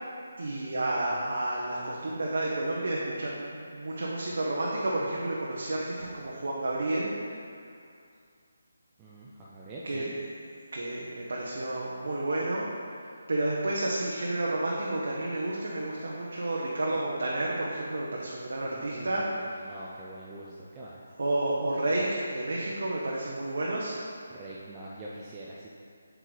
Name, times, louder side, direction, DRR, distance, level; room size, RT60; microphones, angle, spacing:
voice 1, 0.4-7.1 9.8-10.1 10.7-19.6 21.2-24.0, right 2 dB, 60° right, -4 dB, 1.0 m, -31 dB
voice 2, 9.0-10.2 18.7-21.0 24.3-25.7, right 2 dB, 15° right, -7 dB, 0.6 m, -44 dB
8.0 x 4.6 x 4.0 m, 2.3 s
figure-of-eight pair, 150°, 0 cm